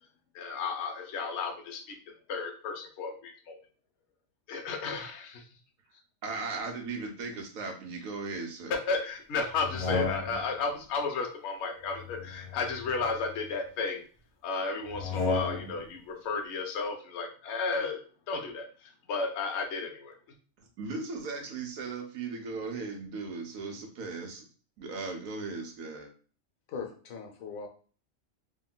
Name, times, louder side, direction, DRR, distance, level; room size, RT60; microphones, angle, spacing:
voice 1, 0.3-2.0 2.3-3.6 4.5-5.5 8.9-14.0 14.4-18.0 18.3-20.1, left 4 dB, 65° left, 3 dB, 0.8 m, -33 dB
voice 2, 6.2-8.7 20.6-24.4 24.8-26.1, right 4 dB, 90° right, 4 dB, 1.1 m, -37 dB
sound 1, 9.5-10.6 11.9-13.6 14.9-15.9, left 3 dB, 35° left, 0.6 m, -34 dB
voice 3, 26.7-27.7, left 5 dB, 90° left, 3 dB, 1.1 m, -39 dB
3.6 x 2.2 x 2.2 m, 0.41 s
omnidirectional pair, 1.4 m